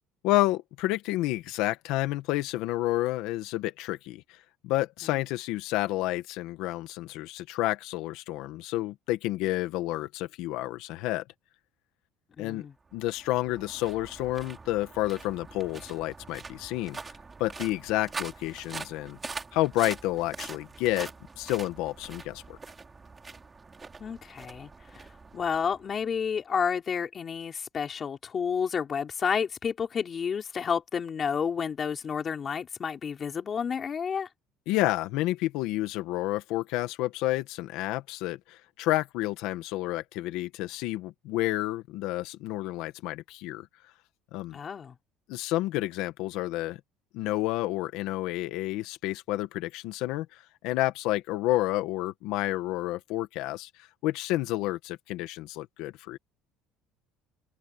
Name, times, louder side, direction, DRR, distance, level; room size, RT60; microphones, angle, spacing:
voice 1, 0.2-4.4 4.6-11.2 12.4-12.6 12.9-17.0 17.4-19.2 19.5-21.1 21.4-22.6 34.7-43.7 44.3-44.6 45.3-46.8 47.1-56.2, left 17 dB, 70° left, 1.5 m, -30 dB
voice 2, 12.4-12.7 24.0-25.0 25.3-34.3 44.5-44.9, left 6 dB, 25° left, 3.5 m, -30 dB
sound 1, 12.9-26.3, right 4 dB, 15° right, 3.1 m, -44 dB
cardioid pair, 155°, 0 cm